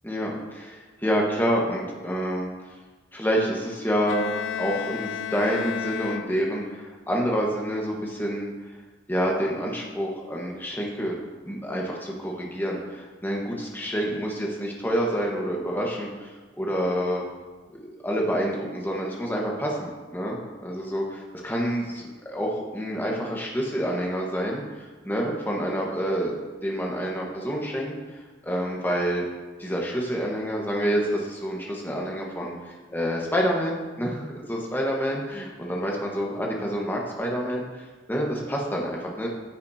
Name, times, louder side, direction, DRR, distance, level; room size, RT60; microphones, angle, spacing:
voice 1, 0.0-2.5 3.1-4.3 4.6-8.5 9.1-11.2 11.4-17.2 17.7-26.3 26.6-27.9 28.4-29.3 29.6-39.3, equal, 10° left, -2 dB, 1.3 m, -28 dB
Bowed string instrument, 4.1-6.8, left 8 dB, 85° left, 0.4 m, -33 dB
14.5 x 6.4 x 2.8 m, 1.3 s
head